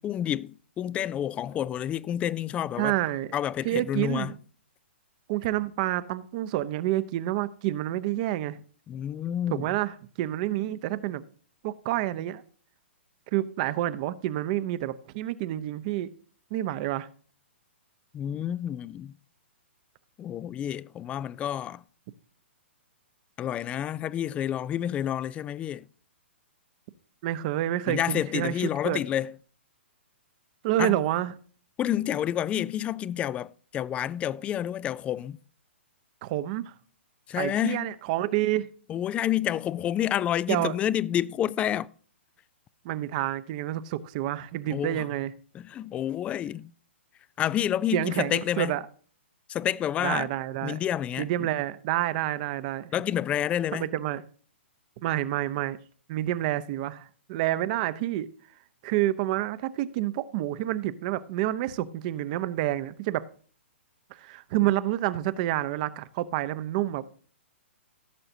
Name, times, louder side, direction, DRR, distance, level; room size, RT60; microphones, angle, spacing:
voice 1, 0.0-3.0 3.3-4.3 8.9-9.6 18.1-19.2 20.2-21.8 23.4-25.9 27.9-29.3 30.8-31.0 31.8-35.4 37.3-37.9 38.9-41.9 44.7-45.1 45.5-46.7 47.4-48.8 49.5-50.3 50.6-51.5 52.9-53.9, left 11 dB, 20° left, 0.4 m, -29 dB
voice 2, 2.8-3.3 3.6-4.4 5.3-8.6 9.5-11.2 11.6-12.4 13.3-16.1 16.5-17.1 27.2-29.0 30.6-31.3 36.2-36.7 37.4-38.7 40.5-40.7 42.8-45.3 47.9-48.8 50.0-50.8 51.2-52.9 53.7-54.2 55.0-55.8 56.1-58.3 58.8-63.3 64.1-67.0, right 14 dB, 40° right, 0.8 m, -28 dB
16.5 x 7.7 x 2.7 m
figure-of-eight pair, 120°, 7 cm